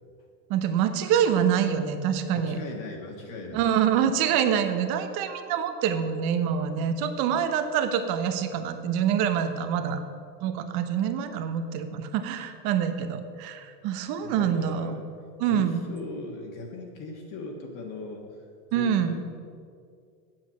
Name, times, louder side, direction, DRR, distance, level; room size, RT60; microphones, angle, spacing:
voice 1, 0.5-2.6 3.5-10.0 10.4-14.9 15.4-15.8 18.7-19.2, right 8 dB, 50° right, 9 dB, 1.0 m, -26 dB
voice 2, 2.3-3.6 14.2-15.1 15.4-18.2 18.7-19.2, left 3 dB, 40° left, 1 dB, 1.5 m, -38 dB
8.3 x 7.7 x 6.3 m, 2.2 s
hypercardioid pair, 115°, 49 cm